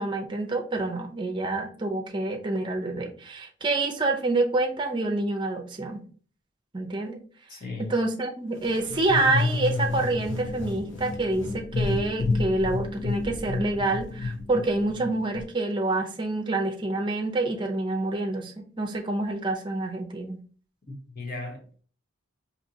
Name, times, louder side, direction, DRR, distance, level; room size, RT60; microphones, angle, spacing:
voice 1, 0.0-6.0 6.7-7.2 7.8-20.4, right 2 dB, 25° right, 0.6 m, -27 dB
voice 2, 7.5-7.9 20.9-21.8, left 3 dB, 45° left, 1.1 m, -37 dB
sound 1, 8.6-15.4, left 3 dB, 70° left, 1.0 m, -30 dB
4.2 x 2.8 x 2.7 m
head